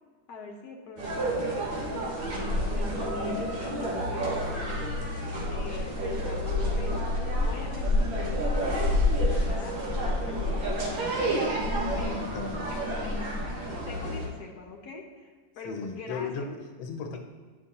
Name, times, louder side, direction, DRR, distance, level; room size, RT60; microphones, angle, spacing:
voice 1, 0.3-4.8 5.1-7.0 7.4-9.8 10.0-11.0 12.0-12.2 12.7-13.2 13.9-16.5, left 4 dB, 60° left, 0 dB, 1.3 m, -44 dB
sound 1, 1.0-14.3, left 1 dB, 80° right, 2.1 m, -29 dB
voice 2, 11.9-12.7 15.6-17.3, left 4 dB, 85° left, 3 dB, 1.7 m, -36 dB
10.0 x 5.3 x 2.9 m, 1.5 s
omnidirectional pair, 2.2 m